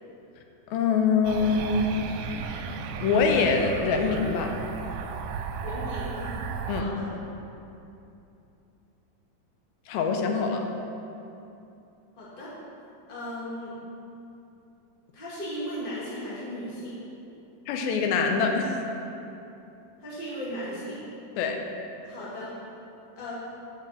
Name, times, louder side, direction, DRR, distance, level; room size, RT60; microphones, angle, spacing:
voice 1, 0.7-1.9 2.5-2.6 3.0-4.6 6.7-6.9 9.9-10.7 17.7-18.7 21.4-21.6, left 5 dB, 90° left, 3 dB, 2.6 m, -24 dB
sound 1, 1.2-6.8, right 5 dB, 80° right, 2.2 m, -34 dB
voice 2, 5.6-6.4 6.7-7.1 12.2-12.5 13.1-13.8 15.1-17.0 20.0-21.0 22.0-22.5 23.1-23.3, equal, 20° left, -7 dB, 1.4 m, -36 dB
7.8 x 5.9 x 7.3 m, 2.8 s
omnidirectional pair, 4.2 m